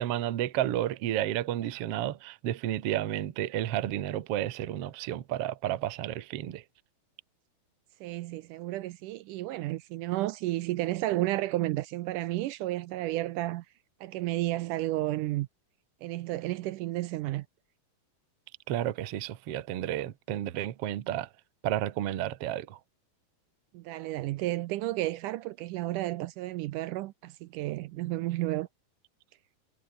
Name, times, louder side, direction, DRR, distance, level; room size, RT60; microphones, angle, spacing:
voice 1, 0.0-6.6 18.7-21.3 21.6-22.8, right 12 dB, 60° right, 1.6 m, -31 dB
voice 2, 8.0-13.7 14.0-15.5 16.0-17.5 23.7-28.7, right 16 dB, 80° right, 1.9 m, -32 dB
omnidirectional pair, 4.2 m